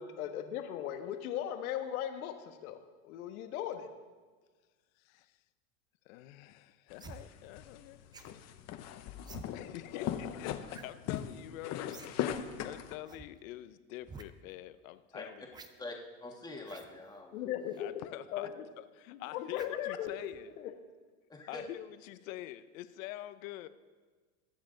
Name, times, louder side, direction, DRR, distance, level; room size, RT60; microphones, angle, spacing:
voice 1, 0.0-2.8 3.0-3.9 17.3-18.0 18.3-18.5 19.1-20.3 20.6-20.7, left 10 dB, 85° left, 7 dB, 1.4 m, -38 dB
voice 2, 5.0-5.4 6.1-8.1 9.5-15.6 17.8-18.5 18.8-20.5 21.5-23.7, left 15 dB, 70° left, 14 dB, 0.8 m, -46 dB
sound 1, 6.9-12.9, left 10 dB, 40° left, 0.8 m, -39 dB
sound 2, 7.0-7.2 8.1-8.4 9.2-9.5 10.7-10.9 11.2-11.3 11.9-12.1 12.4-12.5 13.0-13.3 14.0-14.3 15.5-15.7 16.6-16.9 17.7-17.8 19.5-19.8 20.3-20.4, right 4 dB, 10° right, 0.4 m, -50 dB
voice 3, 15.8-17.5 21.3-21.6, left 2 dB, 10° left, 1 dB, 1.6 m, -45 dB
21.5 x 7.4 x 3.9 m, 1.4 s
supercardioid pair, 140°, 42 cm